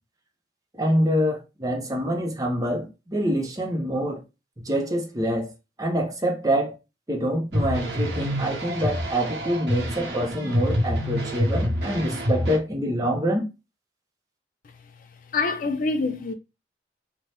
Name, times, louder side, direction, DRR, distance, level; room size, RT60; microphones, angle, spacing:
voice 1, 0.7-4.2 4.6-5.5 5.8-6.7 7.1-13.4, equal, 20° right, 0.6 m, -26 dB
sound 1, 7.5-12.6, equal, 80° right, 1.0 m, -27 dB
voice 2, 15.3-16.3, left 3 dB, 45° left, 0.3 m, -25 dB
2.7 x 2.2 x 3.3 m
head